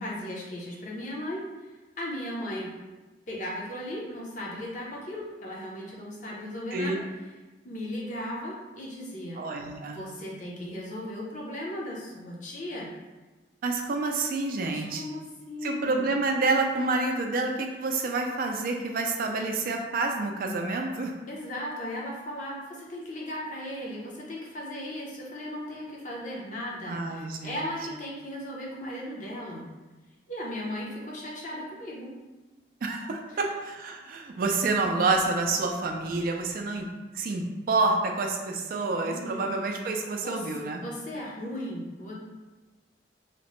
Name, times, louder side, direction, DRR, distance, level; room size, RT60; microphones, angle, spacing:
voice 1, 0.0-1.4 2.0-2.7 3.3-7.0 7.6-9.4 9.8-12.9 14.6-16.1 21.3-29.7 30.3-32.1 36.6-36.7 39.0-39.4 40.2-40.5 40.8-42.1, left 1 dB, 45° left, -3 dB, 0.6 m, -36 dB
voice 2, 9.4-10.0 13.6-15.0 15.6-21.1 26.9-27.6 32.8-36.9 37.1-40.8, right 3 dB, 55° right, 2 dB, 0.3 m, -28 dB
2.9 x 2.1 x 2.9 m, 1.2 s
head